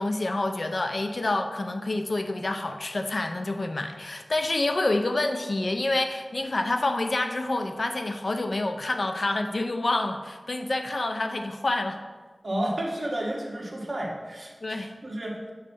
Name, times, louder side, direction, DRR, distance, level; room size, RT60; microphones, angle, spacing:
voice 1, 0.0-12.0 14.6-15.0, left 2 dB, 65° left, 6 dB, 0.5 m, -28 dB
voice 2, 12.4-15.4, right 1 dB, 45° right, -2 dB, 1.4 m, -31 dB
7.9 x 3.2 x 5.4 m, 1.3 s
wide cardioid pair, 60°, 0 cm